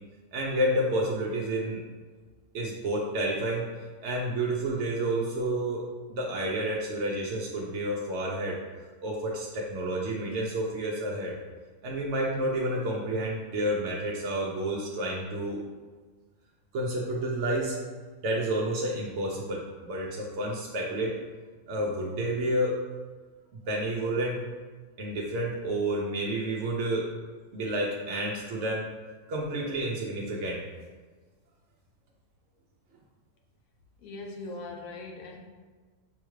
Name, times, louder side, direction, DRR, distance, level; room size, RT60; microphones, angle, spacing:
voice 1, 0.3-1.8 2.5-3.6 4.0-8.6 9.0-11.4 11.8-15.6 16.7-17.8 18.2-21.1 21.7-22.8 23.7-24.4 25.0-27.1 27.5-28.8 29.3-30.6, right 1 dB, 65° right, -2 dB, 0.8 m, -30 dB
voice 2, 34.0-35.4, left 2 dB, 75° left, 2 dB, 1.0 m, -40 dB
5.5 x 2.3 x 3.1 m, 1.4 s
omnidirectional pair, 1.4 m